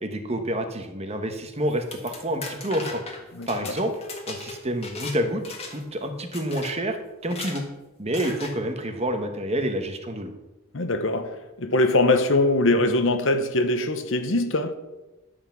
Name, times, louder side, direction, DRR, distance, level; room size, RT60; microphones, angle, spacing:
voice 1, 0.0-3.0 3.5-3.9 4.3-7.0 7.2-7.6 8.0-10.3, right 1 dB, 30° right, 1.2 m, -28 dB
sound 1, 1.7-5.2 5.4-5.9 6.3-6.7 7.2-7.6 8.1-8.5, left 3 dB, 30° left, 1.8 m, -37 dB
voice 2, 3.3-3.7 10.7-14.7, left 2 dB, 65° left, 1.1 m, -22 dB
11.0 x 5.9 x 7.2 m
head